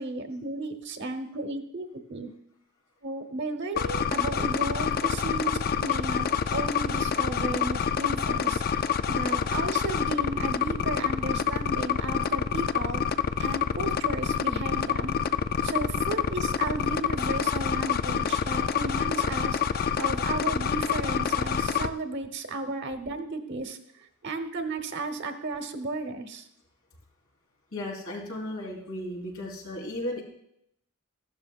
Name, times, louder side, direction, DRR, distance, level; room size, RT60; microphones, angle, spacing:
voice 1, 0.0-2.3 3.0-13.0 13.4-15.2 15.6-23.8 24.2-26.5, right 2 dB, 55° right, 6 dB, 1.1 m, -34 dB
sound 1, 3.8-21.9, left 7 dB, 45° left, 0.4 m, -27 dB
voice 2, 27.7-30.2, left 1 dB, 85° left, -2 dB, 4.0 m, -35 dB
14.5 x 12.5 x 2.5 m, 0.74 s
head